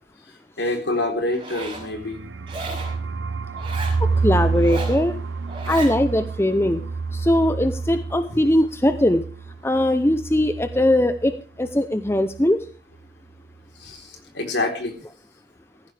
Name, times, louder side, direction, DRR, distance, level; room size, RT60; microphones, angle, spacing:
voice 1, 0.6-2.2 8.3-8.4 13.8-14.9, left 2 dB, 65° left, 4 dB, 3.9 m, -26 dB
Zipper (clothing), 1.3-1.9 2.5-3.0 3.5-4.0 4.5-5.0 5.5-5.9, right 2 dB, 25° right, 5.4 m, -34 dB
sound 1, 1.6-11.4 11.6-11.7 12.0-12.5, right 4 dB, 85° right, 0.9 m, -28 dB
voice 2, 4.2-5.1 5.7-6.8 7.1-9.2 9.6-11.3 11.6-12.6, left 1 dB, 15° left, 10 dB, 0.7 m, -20 dB
16.5 x 14.5 x 3.4 m, 0.38 s
head